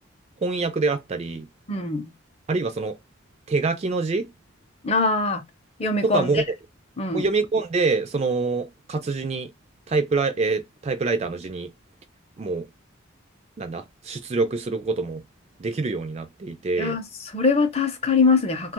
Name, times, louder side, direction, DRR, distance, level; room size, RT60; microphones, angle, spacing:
voice 1, 0.4-1.5 2.5-3.0 3.5-4.3 6.0-6.4 7.1-9.5 9.9-11.7 12.4-12.7 13.6-15.2 15.6-17.0, right 3 dB, 30° right, 0.3 m, -25 dB
voice 2, 1.7-2.1 4.8-5.4 5.8-6.4 7.0-7.2 16.8-18.7, left 4 dB, 30° left, 0.6 m, -23 dB
2.8 x 2.3 x 2.9 m
head